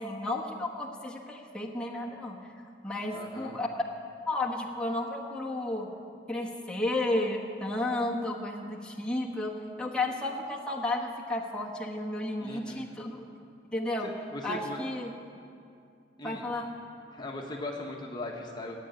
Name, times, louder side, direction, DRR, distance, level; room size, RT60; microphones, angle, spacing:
voice 1, 0.0-2.4 2.8-3.8 4.3-5.9 6.3-13.2 13.7-14.1 14.4-15.1 16.2-16.7, left 2 dB, 5° left, -3 dB, 1.3 m, -32 dB
voice 2, 3.1-3.5 12.4-12.8 14.0-14.8 16.2-16.5 17.1-18.8, left 2 dB, 25° left, 0 dB, 1.2 m, -39 dB
15.5 x 8.5 x 9.3 m, 2.5 s
head